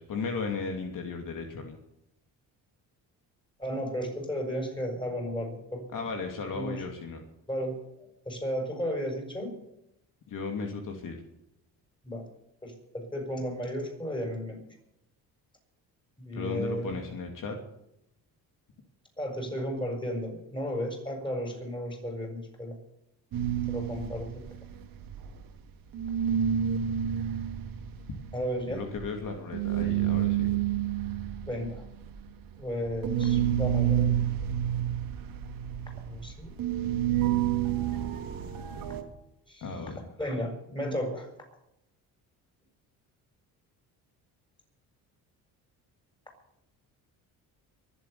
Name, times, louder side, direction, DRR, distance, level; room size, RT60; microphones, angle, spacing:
voice 1, 0.0-1.8 5.9-7.2 10.3-11.2 16.4-17.6 28.7-30.5 39.6-40.0, left 4 dB, 60° left, 3 dB, 2.8 m, -35 dB
voice 2, 3.6-5.8 6.5-6.8 7.5-7.8 8.3-9.6 12.0-12.3 12.6-14.6 16.2-17.0 19.2-22.8 23.7-24.4 28.3-28.8 31.4-31.8 32.6-34.2 36.0-36.5 39.5-39.7 40.2-41.3, equal, 15° left, 2 dB, 7.1 m, -34 dB
sound 1, 23.3-25.7 25.9-39.0, right 10 dB, 65° right, 2.4 m, -29 dB
23.5 x 8.4 x 6.9 m, 0.82 s
cardioid pair, 100°, 36 cm